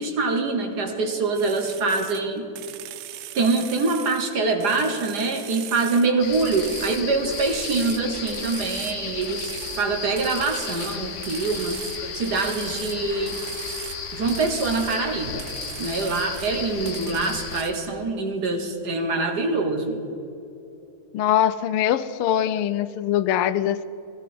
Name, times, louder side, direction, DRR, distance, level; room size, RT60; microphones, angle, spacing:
voice 1, 0.0-2.5 3.3-11.8 12.1-13.4 14.1-15.5 15.8-20.1, right 3 dB, 55° right, 5 dB, 1.5 m, -24 dB
sound 1, 1.3-2.2 2.6-4.3 4.6-7.1 7.3-9.0 9.2-9.9 10.2-13.0 13.3-14.0 14.3-15.0 15.4-16.6 16.9-17.7, right 13 dB, 75° right, 1.0 m, -39 dB
sound 2, 6.2-17.6, left 5 dB, 45° left, 1.1 m, -34 dB
voice 2, 21.1-23.8, left 10 dB, 85° left, 14 dB, 1.5 m, -22 dB
16.5 x 13.5 x 4.3 m, 2.9 s
omnidirectional pair, 2.3 m